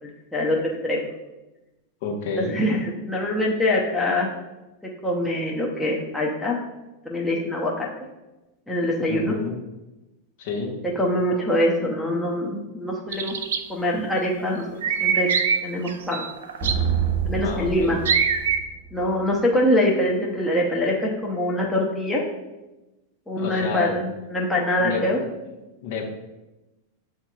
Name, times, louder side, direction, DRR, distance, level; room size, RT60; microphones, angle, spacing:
voice 1, 0.0-0.6 0.8-1.1 2.4-4.3 5.0-6.6 7.0-7.9 8.7-9.3 11.0-13.3 13.7-14.7 15.0-15.3 15.6-16.2 17.2-18.0 18.9-22.2 23.3-25.2, left 1 dB, 5° left, -3 dB, 0.7 m, -24 dB
voice 2, 2.0-2.6 9.1-9.5 10.4-10.7 17.4-18.0 23.4-24.0 24.8-25.0 25.8-26.1, left 4 dB, 50° left, 1 dB, 0.9 m, -29 dB
sound 1, 13.1-13.6 14.8-15.6 15.8-17.1 18.1-18.6, right 6 dB, 60° right, 0.3 m, -23 dB
sound 2, 16.6-19.3, right 7 dB, 35° right, 0.7 m, -27 dB
7.9 x 2.8 x 2.3 m, 1.0 s
figure-of-eight pair, 90°, 0 cm